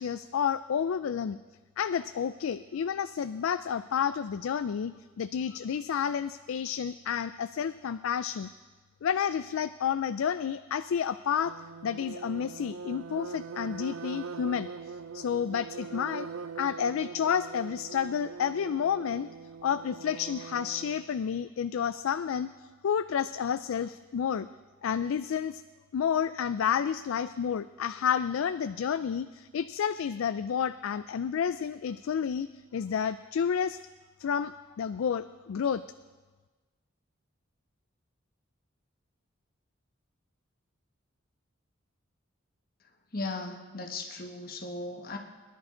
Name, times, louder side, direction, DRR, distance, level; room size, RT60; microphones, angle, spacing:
voice 1, 0.0-1.4 1.8-8.5 9.0-11.5 11.8-14.7 15.1-16.3 16.6-19.3 19.6-24.5 24.8-25.6 25.9-32.5 32.7-33.8 34.2-35.8, left 7 dB, 75° left, 12 dB, 0.3 m, -30 dB
sound 1, 11.5-21.1, right 5 dB, 85° right, 0.4 m, -42 dB
voice 2, 43.1-45.2, left 2 dB, 45° left, 3 dB, 1.4 m, -37 dB
23.0 x 11.0 x 3.8 m, 1.3 s
head